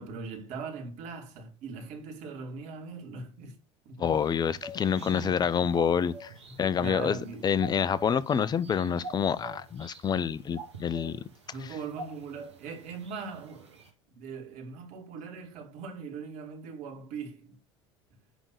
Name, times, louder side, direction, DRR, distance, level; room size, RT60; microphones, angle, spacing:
voice 1, 0.0-3.6 3.9-4.2 5.0-5.8 6.5-7.5 11.1-13.8 14.2-17.6, right 4 dB, 55° right, 2.5 m, -41 dB
voice 2, 4.0-6.3 6.6-7.2 7.4-11.2, left 7 dB, 30° left, 0.7 m, -27 dB
sound 1, 4.1-13.9, right 2 dB, 90° right, 2.0 m, -47 dB
10.0 x 3.7 x 6.6 m
hypercardioid pair, 75°, 14 cm